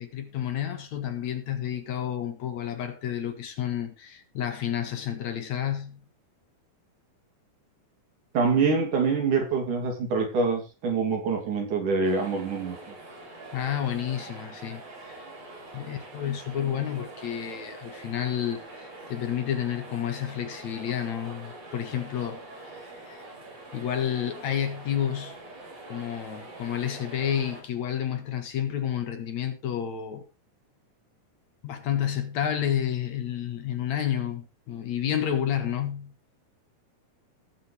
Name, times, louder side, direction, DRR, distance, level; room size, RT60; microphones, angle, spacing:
voice 1, 0.0-6.0 13.5-15.2 15.7-22.4 22.7-23.3 23.7-25.4 25.9-30.2 31.6-36.1, left 9 dB, 65° left, 2.9 m, -30 dB
voice 2, 8.3-12.8, right 4 dB, 70° right, 4.5 m, -25 dB
sound 1, 12.0-27.6, right 2 dB, 55° right, 5.8 m, -44 dB
18.5 x 7.7 x 3.4 m
omnidirectional pair, 3.7 m